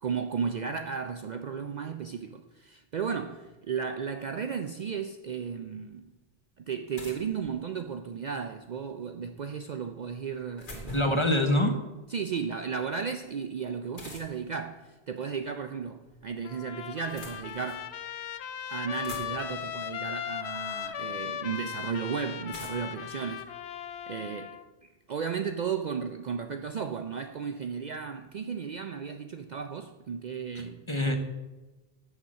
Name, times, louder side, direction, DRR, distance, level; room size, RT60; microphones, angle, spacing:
voice 1, 0.0-6.1 6.6-11.0 12.1-17.9 18.7-23.4 24.1-30.8, right 6 dB, 55° right, 7 dB, 0.5 m, -34 dB
sound 1, 6.9-8.1 10.1-11.3 13.9-14.6 15.7-16.3 16.9-17.9 18.5-18.6 18.8-19.7 20.8-20.9 22.5-24.0, equal, 50° left, 1.8 m, -45 dB
voice 2, 10.9-11.8 30.9-31.2, left 1 dB, 30° left, 5 dB, 0.9 m, -24 dB
Trumpet, 16.4-24.6, left 9 dB, 90° left, 0.9 m, -38 dB
6.6 x 6.1 x 7.2 m, 1.1 s
omnidirectional pair, 1.1 m